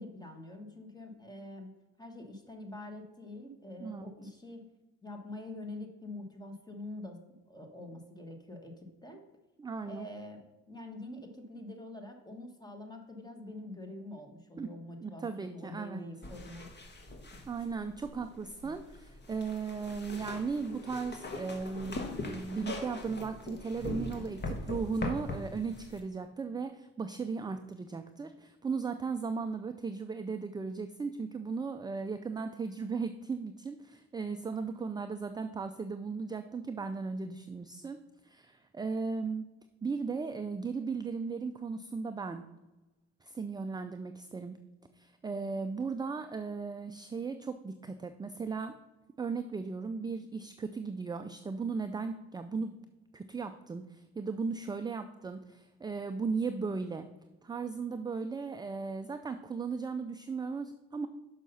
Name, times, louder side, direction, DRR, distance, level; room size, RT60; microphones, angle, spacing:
voice 1, 0.0-1.7 2.0-4.7 5.0-7.2 7.5-9.2 9.9-16.7, left 2 dB, 15° left, 4 dB, 1.4 m, -45 dB
voice 2, 9.6-10.1 14.6-14.7 15.0-16.0 17.5-38.0 38.2-39.5 39.8-42.4 43.2-44.6 45.0-48.7 49.2-52.8 53.1-57.1 57.4-61.1, right 4 dB, 15° right, 8 dB, 0.3 m, -36 dB
sound 1, 16.2-26.0, left 2 dB, 35° left, 1.2 m, -41 dB
6.1 x 5.6 x 5.5 m, 1.1 s
cardioid pair, 90°, 30 cm